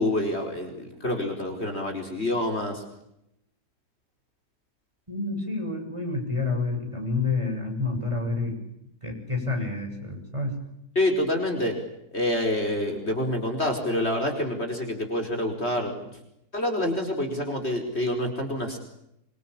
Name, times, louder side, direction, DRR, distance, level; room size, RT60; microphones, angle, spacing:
voice 1, 0.0-2.8 10.9-11.8 12.1-16.1 16.5-18.8, left 1 dB, 40° left, 3 dB, 5.0 m, -27 dB
voice 2, 5.1-8.6 9.0-10.5, left 3 dB, 20° right, 3 dB, 7.9 m, -29 dB
26.0 x 26.0 x 8.8 m, 0.81 s
omnidirectional pair, 1.7 m